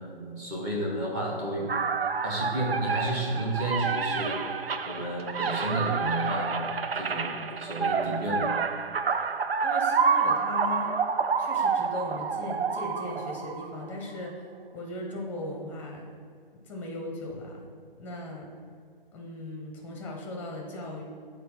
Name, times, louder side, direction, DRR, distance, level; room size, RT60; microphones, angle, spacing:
voice 1, 0.0-1.8 2.2-4.6 4.8-6.7 7.0-8.5, right 1 dB, 20° right, -4 dB, 1.2 m, -31 dB
sound 1, 1.7-14.0, right 5 dB, 85° right, 0.6 m, -28 dB
voice 2, 9.6-10.9 11.4-14.3 14.7-16.1 16.7-17.6 18.0-18.5 19.1-21.0, left 1 dB, 5° left, 0 dB, 0.9 m, -38 dB
8.1 x 4.1 x 5.4 m, 2.2 s
hypercardioid pair, 145°, 29 cm